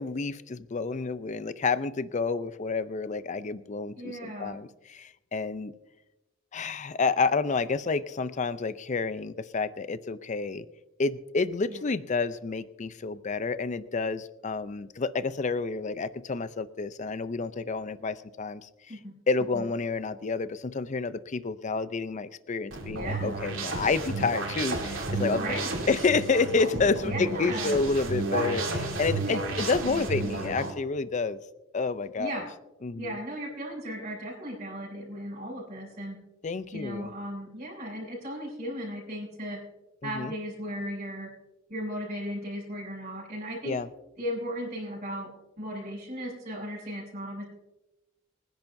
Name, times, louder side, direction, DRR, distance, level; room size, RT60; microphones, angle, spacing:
voice 1, 0.0-5.7 6.5-10.6 11.0-18.7 19.3-31.4 31.7-32.4 32.8-33.2 36.4-37.1 40.0-40.3 43.6-43.9, left 4 dB, 35° left, 14 dB, 0.5 m, -29 dB
voice 2, 3.9-4.6 11.7-11.8 18.9-19.1 19.5-19.7 22.9-23.4 25.4-25.7 27.0-27.8 29.3-30.2 32.2-32.5 33.0-36.2 36.7-39.6 40.0-41.3 41.7-43.8 44.2-45.3 45.6-47.5, equal, 35° right, -10 dB, 5.7 m, -36 dB
sound 1, 22.7-30.7, right 3 dB, 80° right, 2.8 m, -32 dB
25.5 x 10.5 x 2.6 m, 1.0 s
head